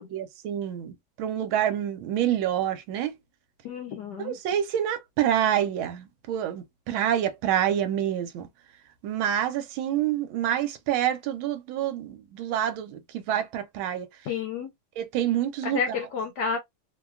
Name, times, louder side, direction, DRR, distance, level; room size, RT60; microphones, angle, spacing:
voice 1, 0.1-3.2 4.2-8.5 9.0-14.1 15.0-16.0, right 10 dB, 85° right, 1.4 m, -27 dB
voice 2, 3.6-4.4 14.3-14.7 15.6-16.6, left 6 dB, 70° left, 1.1 m, -30 dB
3.2 x 2.2 x 2.3 m
omnidirectional pair, 2.2 m